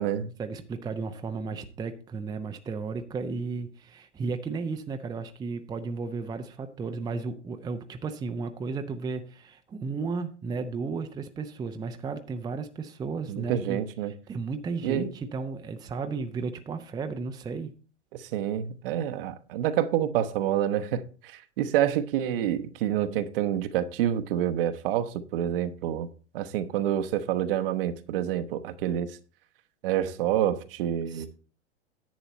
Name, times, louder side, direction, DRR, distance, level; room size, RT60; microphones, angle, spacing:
voice 1, 0.4-17.7 31.1-31.3, right 4 dB, 10° right, 0.7 m, -34 dB
voice 2, 13.3-14.1 14.8-15.1 18.1-26.1 26.3-29.2 29.8-31.3, right 11 dB, 50° right, 1.0 m, -28 dB
10.5 x 8.1 x 4.2 m
figure-of-eight pair, 100°, 36 cm